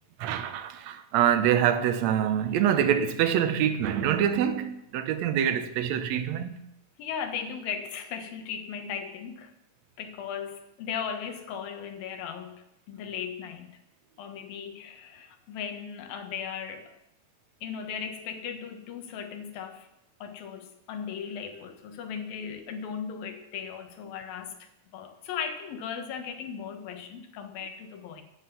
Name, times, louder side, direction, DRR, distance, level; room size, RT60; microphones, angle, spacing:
voice 1, 0.2-6.6, right 9 dB, 75° right, 1.7 m, -25 dB
voice 2, 7.0-9.5 10.0-13.8 14.2-16.9 17.6-19.9 20.2-28.2, left 7 dB, 80° left, 3.2 m, -37 dB
15.5 x 10.0 x 5.9 m
omnidirectional pair, 4.1 m